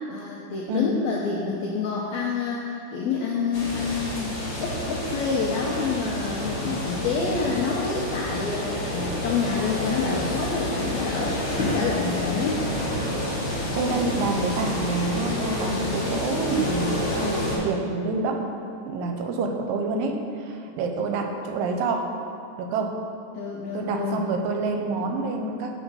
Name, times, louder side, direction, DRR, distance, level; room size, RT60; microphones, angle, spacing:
voice 1, 0.1-12.7 23.3-24.3, left 5 dB, 85° left, -3 dB, 1.6 m, -28 dB
sound 1, 3.5-17.6, left 1 dB, 55° left, 1.5 m, -29 dB
voice 2, 13.5-18.5 18.9-22.1 22.6-23.0 23.7-25.8, right 3 dB, 85° right, 4 dB, 2.3 m, -27 dB
Guitar, 13.9-15.7, right 1 dB, 65° right, 2.2 m, -46 dB
6.1 x 4.9 x 5.4 m, 2.5 s
omnidirectional pair, 3.9 m